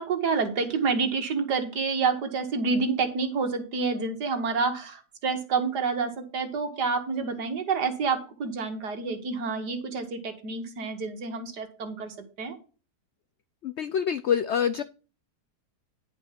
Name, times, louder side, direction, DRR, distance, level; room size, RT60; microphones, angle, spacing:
voice 1, 0.0-12.6, right 4 dB, 80° right, 7 dB, 2.2 m, -28 dB
voice 2, 13.6-14.8, left 8 dB, 70° left, 13 dB, 0.6 m, -26 dB
10.5 x 5.3 x 5.9 m, 0.35 s
omnidirectional pair, 1.7 m